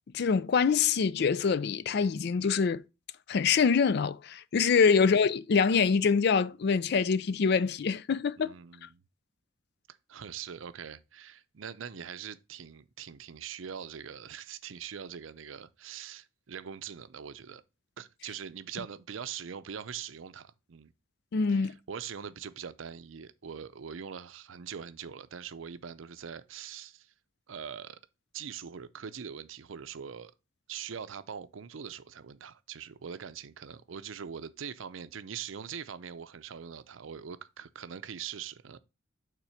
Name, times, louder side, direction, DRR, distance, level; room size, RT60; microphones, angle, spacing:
voice 1, 0.1-2.8 3.3-8.5 21.3-21.8, left 5 dB, 55° left, 0.4 m, -25 dB
voice 2, 8.4-9.0 9.9-17.6 18.0-20.9 21.5-27.1 27.5-28.0 28.3-30.3 30.7-38.8, right 7 dB, 80° right, 0.5 m, -42 dB
5.9 x 3.7 x 5.6 m
head